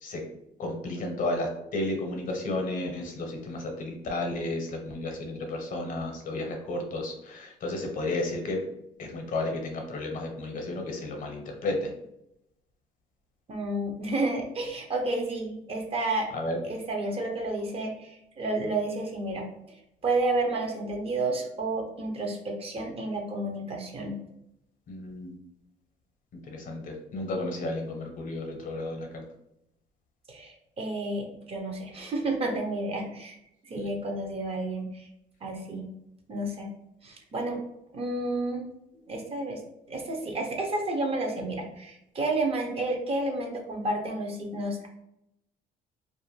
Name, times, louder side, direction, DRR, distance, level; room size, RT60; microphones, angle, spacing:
voice 1, 0.6-8.6 9.0-11.9 16.3-16.6 24.9-25.3 26.4-29.2, left 2 dB, 50° left, 3 dB, 0.7 m, -32 dB
voice 2, 13.5-16.3 16.6-19.8 20.0-24.2 30.3-33.4 33.6-35.1 35.4-35.9 36.3-36.7 37.0-37.6 37.9-38.7 39.1-39.6 39.9-44.9, right 2 dB, 35° right, 2 dB, 0.6 m, -31 dB
2.4 x 2.1 x 3.0 m, 0.81 s
cardioid pair, 110°, 17 cm